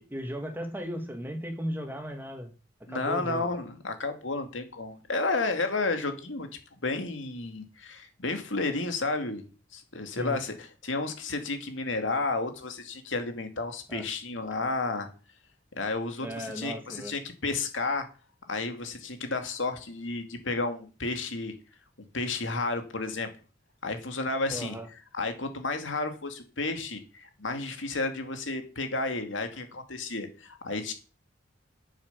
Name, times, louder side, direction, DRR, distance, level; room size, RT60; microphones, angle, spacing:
voice 1, 0.0-2.5 2.9-3.5 10.2-10.4 13.9-14.1 16.2-17.1 24.5-24.9, equal, 10° right, 5 dB, 2.3 m, -36 dB
voice 2, 2.9-6.5 6.8-9.4 9.7-10.5 10.8-15.1 15.8-18.1 18.5-21.5 22.1-23.3 23.8-24.8 25.1-30.9, left 3 dB, 85° left, 6 dB, 2.4 m, -32 dB
9.9 x 7.6 x 6.9 m, 0.35 s
head